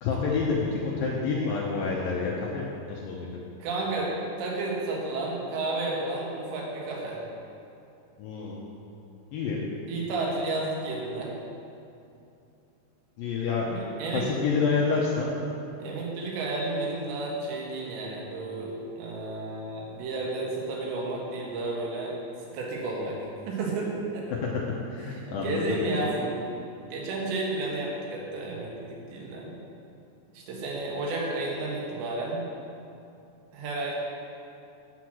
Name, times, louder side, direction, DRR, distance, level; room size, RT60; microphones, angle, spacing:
voice 1, 0.0-3.3 8.2-8.6 9.3-9.6 13.2-13.7 14.1-15.3 24.3-24.5 24.9-25.6, left 5 dB, 75° left, -4 dB, 2.2 m, -28 dB
voice 2, 3.6-7.2 9.9-11.4 13.7-14.3 15.8-22.1 22.5-23.2 23.5-24.3 25.1-26.4 26.9-29.5 30.3-32.4 33.5-33.9, right 2 dB, 80° right, -3 dB, 3.8 m, -32 dB
8.2 x 8.1 x 6.1 m, 2.7 s
omnidirectional pair, 5.1 m